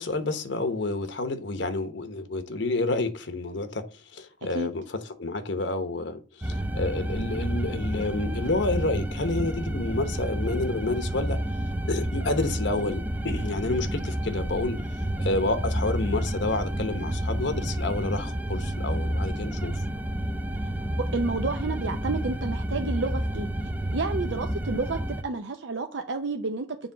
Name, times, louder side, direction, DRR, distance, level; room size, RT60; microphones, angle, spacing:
voice 1, 0.0-3.8 4.1-4.8 5.2-11.4 11.9-14.8 15.2-19.7, left 2 dB, 80° left, 1.0 m, -29 dB
sound 1, 6.4-25.2, right 1 dB, 10° right, 0.4 m, -30 dB
voice 2, 21.0-23.5 23.9-26.7, right 3 dB, 80° right, 0.6 m, -30 dB
7.2 x 3.2 x 5.9 m
head